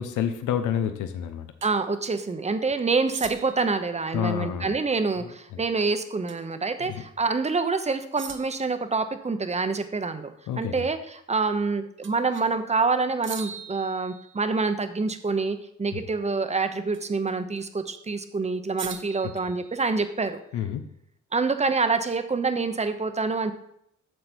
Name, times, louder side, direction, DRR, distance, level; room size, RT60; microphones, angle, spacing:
voice 1, 0.0-1.5 4.1-4.8 5.2-5.6 6.8-7.0 10.5-10.9 15.9-16.0 20.5-20.9, left 9 dB, 85° left, 9 dB, 0.8 m, -29 dB
voice 2, 1.6-11.0 11.3-20.4 21.3-23.5, right 4 dB, 20° right, 9 dB, 0.8 m, -26 dB
sound 1, 1.6-1.7 3.1-3.7 6.3-6.5 6.9-7.0 8.2-8.7 12.0-12.6 13.2-14.6 16.9-17.3 18.8-20.2, right 6 dB, 40° right, 1.0 m, -41 dB
7.9 x 6.7 x 4.4 m, 0.72 s
cardioid pair, 90°, 30 cm